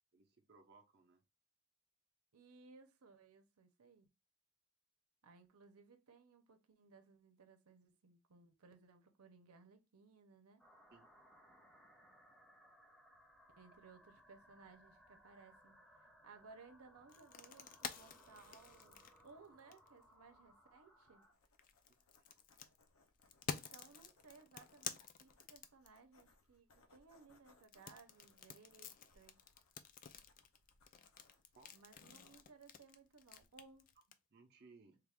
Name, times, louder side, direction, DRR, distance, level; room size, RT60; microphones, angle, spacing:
voice 1, 0.1-1.2 10.9-11.1 22.2-22.3 31.5-31.7 34.3-35.0, right 4 dB, 45° right, 0.6 m, -64 dB
voice 2, 2.3-4.1 5.2-10.6 13.6-21.3 23.5-29.4 31.7-33.9, right 4 dB, 90° right, 0.7 m, -62 dB
sound 1, 10.6-21.3, equal, ahead, 0.7 m, -66 dB
sound 2, 17.1-20.0 21.4-26.2 27.6-34.1, left 7 dB, 40° left, 0.3 m, -50 dB
sound 3, 21.2-33.9, left 2 dB, 75° left, 0.7 m, -72 dB
3.4 x 2.4 x 3.4 m
head